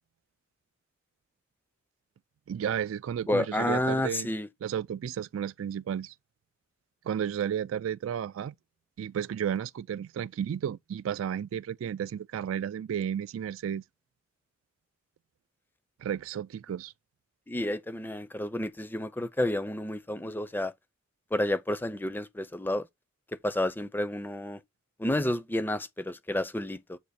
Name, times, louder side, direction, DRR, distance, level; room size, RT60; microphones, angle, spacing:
voice 1, 2.5-4.3 4.6-6.1 7.0-8.5 9.0-13.8 16.0-16.9, right 9 dB, 70° right, 0.3 m, -33 dB
voice 2, 3.3-4.5 17.5-20.7 21.3-22.9 23.4-24.6 25.0-27.0, left 1 dB, 10° left, 0.5 m, -30 dB
8.0 x 2.9 x 4.1 m
head